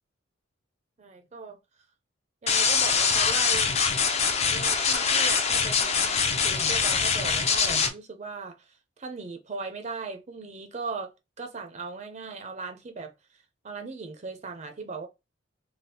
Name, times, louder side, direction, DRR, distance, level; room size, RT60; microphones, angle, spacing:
voice 1, 1.0-1.6 2.4-3.7 4.4-11.1 11.4-15.1, right 4 dB, 35° right, 0.5 m, -38 dB
sound 1, 2.5-7.9, left 5 dB, 30° left, 0.4 m, -24 dB
3.3 x 2.4 x 2.7 m
head